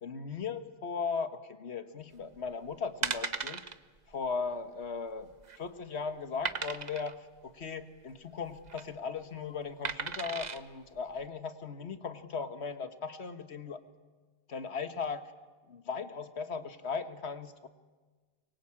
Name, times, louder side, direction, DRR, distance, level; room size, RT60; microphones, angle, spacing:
voice 1, 0.0-3.6 4.1-5.3 5.6-13.8 14.5-15.3 15.7-17.7, left 5 dB, 85° left, 10 dB, 1.7 m, -37 dB
sound 1, 2.4-2.5 3.0-3.7 4.1-4.3 4.5-4.6 5.2-5.7 6.4-7.1 8.5-8.8 9.8-10.6 11.2-11.3, right 5 dB, 45° right, 1.0 m, -36 dB
24.5 x 23.0 x 8.7 m, 1.4 s
omnidirectional pair, 1.1 m